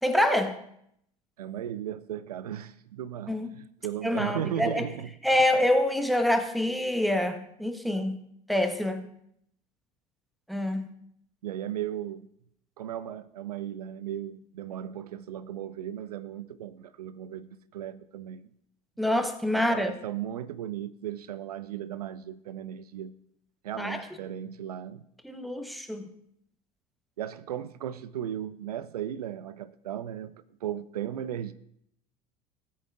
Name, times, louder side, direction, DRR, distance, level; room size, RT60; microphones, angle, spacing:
voice 1, 0.0-0.6 3.3-3.6 4.0-4.8 5.2-8.2 8.5-9.1 10.5-10.8 19.0-19.9 23.8-24.0 25.2-26.1, left 1 dB, ahead, 1.0 m, -26 dB
voice 2, 1.4-5.1 11.4-12.3 12.8-18.5 19.5-23.2 23.6-25.0 27.2-30.3 30.6-31.5, right 10 dB, 70° right, 0.4 m, -36 dB
17.5 x 8.6 x 2.5 m
figure-of-eight pair, 70°, 20 cm